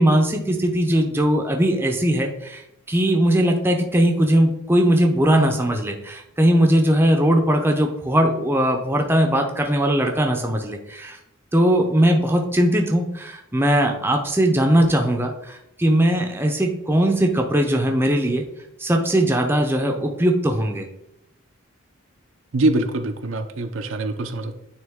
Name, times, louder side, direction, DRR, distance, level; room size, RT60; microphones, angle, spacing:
voice 1, 0.0-2.6 2.9-11.2 11.5-18.5 18.8-20.8, right 1 dB, 10° right, 3 dB, 0.6 m, -19 dB
voice 2, 22.5-24.6, right 2 dB, 60° right, 6 dB, 0.6 m, -23 dB
9.3 x 3.2 x 3.6 m, 0.85 s
head